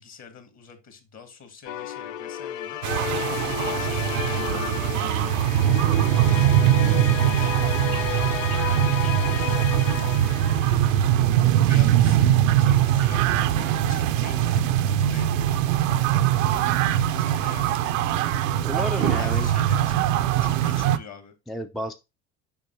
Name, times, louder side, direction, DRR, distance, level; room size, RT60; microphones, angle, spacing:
voice 1, 0.0-5.4 6.0-7.5 8.6-10.0 10.6-11.1 11.6-14.6 15.1-15.3 15.8-18.3 18.9-21.3, left 6 dB, 45° left, 7 dB, 1.8 m, -44 dB
sound 1, 1.7-11.4, left 11 dB, 80° left, 0.5 m, -32 dB
sound 2, 2.8-21.0, right 11 dB, 75° right, 0.6 m, -22 dB
voice 2, 18.4-19.5 21.5-21.9, equal, ahead, 7 dB, 0.4 m, -31 dB
7.0 x 5.3 x 2.6 m, 0.25 s
hypercardioid pair, 65°, 39 cm